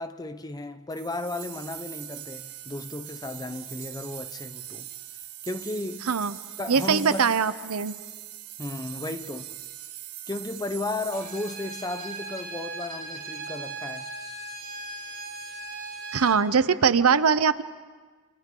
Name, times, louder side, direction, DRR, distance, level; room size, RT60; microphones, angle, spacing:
voice 1, 0.0-4.9 5.4-6.1 6.6-7.3 8.6-9.6 10.3-14.1, left 2 dB, 15° left, 0.7 m, -34 dB
sound 1, 0.9-12.9, right 12 dB, 85° right, 1.5 m, -42 dB
voice 2, 6.7-8.0 16.1-17.6, right 6 dB, 70° right, 0.7 m, -22 dB
Bowed string instrument, 11.1-16.4, right 3 dB, 45° right, 4.0 m, -38 dB
29.0 x 28.5 x 3.8 m
head